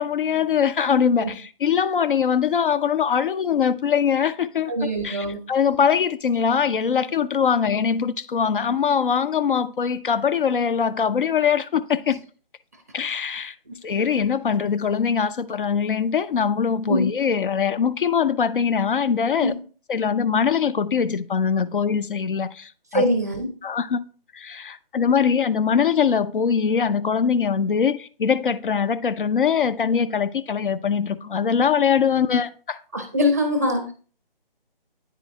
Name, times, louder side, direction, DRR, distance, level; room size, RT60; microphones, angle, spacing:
voice 1, 0.0-12.2 12.9-13.5 13.8-19.5 19.9-23.1 23.6-24.0 24.3-32.8, left 7 dB, 65° left, 0.5 m, -22 dB
voice 2, 4.7-5.4 16.9-17.0 19.4-19.5 22.9-23.5 32.9-33.9, equal, 15° right, 0.5 m, -22 dB
9.1 x 4.3 x 2.7 m
figure-of-eight pair, 160°, 29 cm